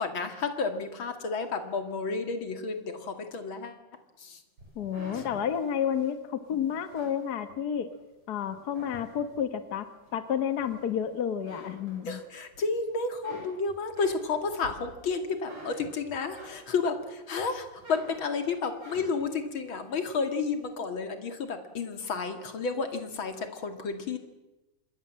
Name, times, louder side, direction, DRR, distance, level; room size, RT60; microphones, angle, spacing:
voice 1, 0.0-3.8 4.2-4.4 5.1-5.3 12.1-24.2, left 4 dB, 40° left, 7 dB, 2.7 m, -31 dB
sound 1, 4.6-8.0 8.4-9.5 10.0-11.0 11.3-12.6 12.9-17.0 17.4-19.4, right 1 dB, 45° right, 8.5 m, -48 dB
voice 2, 4.8-7.9 8.3-9.9 10.1-12.2, left 8 dB, 55° left, 10 dB, 1.0 m, -30 dB
26.5 x 22.0 x 7.6 m, 1.0 s
omnidirectional pair, 3.7 m